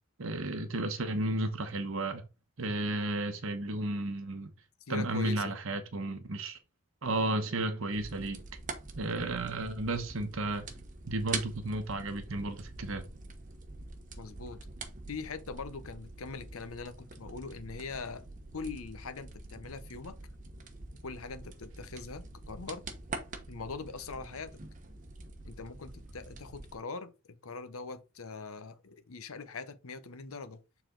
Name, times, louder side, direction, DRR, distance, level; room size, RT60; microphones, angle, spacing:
voice 1, 0.2-2.2 2.6-4.5 4.9-6.6 7.0-8.4 9.0-10.7 11.1-13.0, right 2 dB, 70° right, 0.9 m, -33 dB
voice 2, 4.9-5.6 14.2-14.6 15.1-18.2 18.5-20.2 21.0-22.8 23.5-24.6 25.4-27.1 27.4-30.6, left 4 dB, 80° left, 0.9 m, -42 dB
sound 1, 7.9-26.8, right 3 dB, 35° right, 1.0 m, -45 dB
6.9 x 4.1 x 3.9 m
head